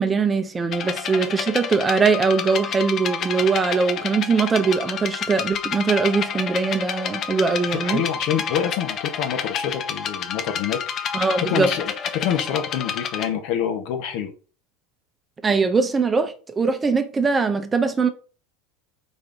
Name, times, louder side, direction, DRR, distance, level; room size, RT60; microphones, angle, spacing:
voice 1, 0.0-8.0 11.1-11.7 15.4-18.1, right 4 dB, 20° right, 0.7 m, -21 dB
sound 1, 0.7-13.2, left 7 dB, 40° left, 0.7 m, -29 dB
voice 2, 7.7-11.1 11.5-11.8 12.1-14.3, left 9 dB, 60° left, 1.1 m, -26 dB
4.0 x 3.4 x 3.9 m
hypercardioid pair, 85°, 0 cm